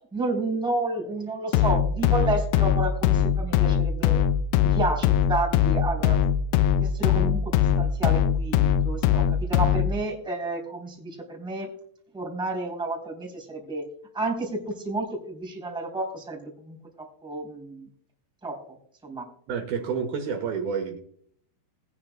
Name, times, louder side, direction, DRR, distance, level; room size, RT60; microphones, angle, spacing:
voice 1, 0.1-4.2 4.6-6.2 6.8-11.7 12.1-13.9 14.1-17.9 18.4-18.8 19.0-19.3, right 2 dB, ahead, 0 dB, 2.7 m, -31 dB
sound 1, 1.5-10.0, left 9 dB, 90° left, 2.8 m, -22 dB
voice 2, 19.5-21.0, right 6 dB, 70° right, 4 dB, 2.9 m, -29 dB
20.5 x 9.7 x 2.2 m, 0.62 s
omnidirectional pair, 4.8 m